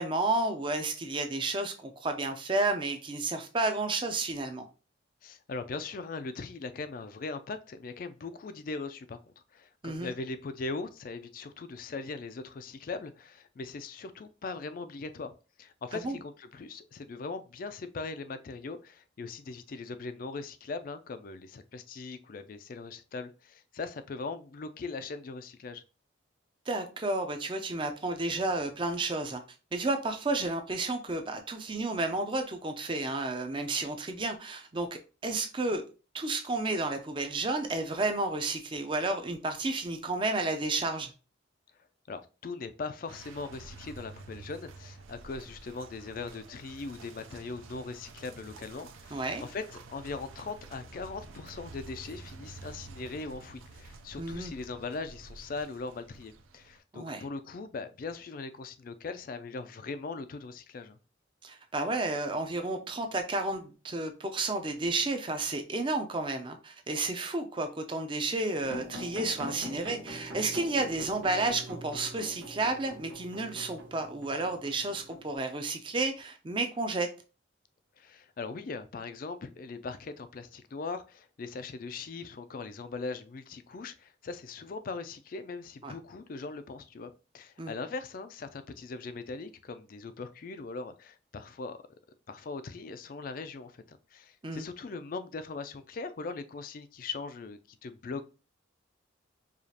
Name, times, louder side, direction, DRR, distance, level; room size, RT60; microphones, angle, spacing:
voice 1, 0.0-4.7 9.8-10.1 15.9-16.2 26.7-29.4 29.7-35.8 36.1-41.1 49.1-49.4 54.2-54.5 56.9-57.2 61.4-77.1 85.8-85.9 87.6-87.7 94.4-94.7, right 2 dB, 25° right, 0.5 m, -31 dB
voice 2, 5.2-9.2 9.5-15.3 15.6-25.8 42.1-61.0 78.0-91.8 92.3-98.2, left 4 dB, 45° left, 0.3 m, -40 dB
sound 1, 43.1-56.8, right 3 dB, 85° right, 0.5 m, -49 dB
sound 2, 68.6-75.4, equal, 65° right, 1.3 m, -44 dB
4.9 x 2.4 x 2.8 m
head